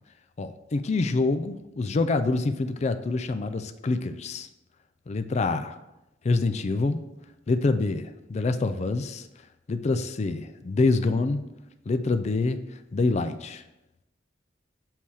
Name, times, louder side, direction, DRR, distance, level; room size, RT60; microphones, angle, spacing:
voice 1, 0.4-4.5 5.1-5.7 6.2-7.0 7.5-9.2 9.7-11.4 11.9-12.6 12.9-13.6, left 3 dB, 35° left, 9 dB, 0.4 m, -26 dB
7.4 x 2.8 x 4.7 m, 0.95 s
head